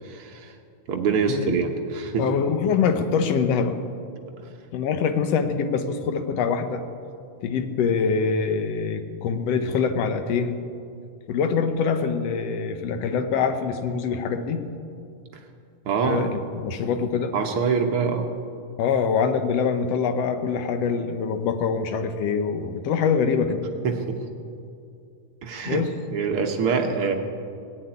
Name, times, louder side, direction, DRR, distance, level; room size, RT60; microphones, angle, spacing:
voice 1, 0.0-0.5 0.9-2.3 15.8-16.2 17.3-18.3 23.8-24.2 25.4-25.8 26.1-27.1, right 5 dB, 60° right, 3 dB, 1.5 m, -24 dB
voice 2, 2.2-3.8 4.7-6.8 7.4-10.6 11.3-14.6 16.0-17.3 18.8-23.6 25.7-25.9, left 6 dB, 70° left, 8 dB, 1.6 m, -24 dB
18.0 x 7.3 x 9.7 m, 2.5 s
omnidirectional pair, 3.6 m